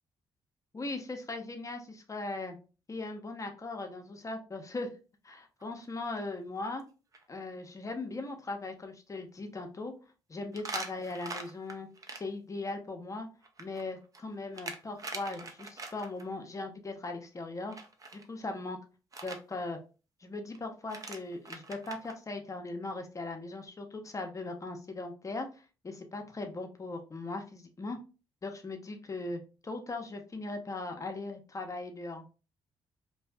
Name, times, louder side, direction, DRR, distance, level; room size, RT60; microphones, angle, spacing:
voice 1, 0.7-2.6 2.9-4.9 5.2-6.8 7.3-9.9 10.3-13.3 13.6-17.8 18.1-18.8 19.2-19.8 20.2-28.0 28.4-32.2, left 2 dB, 30° left, 4 dB, 0.6 m, -39 dB
sound 1, 5.6-5.8 6.2-6.3 6.8-6.9 7.1-7.2 10.5-12.2 13.4-16.2 17.7-18.2 19.1-19.4 20.5-20.6 20.8-22.1, right 3 dB, 30° right, 0.6 m, -42 dB
2.6 x 2.3 x 2.2 m, 0.34 s
supercardioid pair, 60°, 11 cm